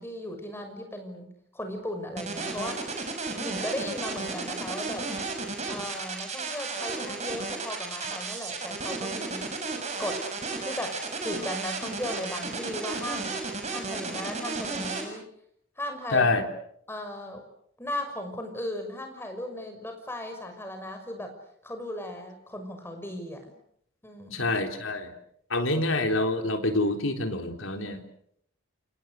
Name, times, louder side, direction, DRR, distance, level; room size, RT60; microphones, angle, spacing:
voice 1, 0.0-3.0 3.4-5.1 5.7-9.5 10.0-10.3 10.6-13.4 13.7-15.3 15.8-16.3 16.9-17.4 17.8-21.3 21.6-23.5 24.0-24.5, left 1 dB, 10° left, 5 dB, 6.1 m, -36 dB
sound 1, 2.2-15.0, right 4 dB, 30° right, 6.8 m, -33 dB
voice 2, 16.1-16.4 24.3-25.1 25.5-28.0, left 2 dB, 70° left, 5 dB, 3.8 m, -26 dB
29.0 x 27.5 x 6.6 m, 0.69 s
head